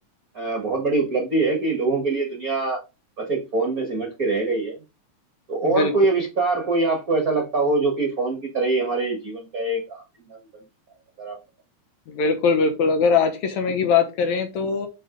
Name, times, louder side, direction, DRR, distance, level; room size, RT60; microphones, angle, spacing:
voice 1, 0.3-2.8 3.2-4.8 5.5-10.4 11.2-11.3, right 3 dB, 45° right, 0 dB, 1.2 m, -24 dB
voice 2, 5.6-5.9 12.1-14.9, left 5 dB, 70° left, 6 dB, 2.2 m, -21 dB
6.2 x 5.2 x 3.8 m, 0.27 s
omnidirectional pair, 3.6 m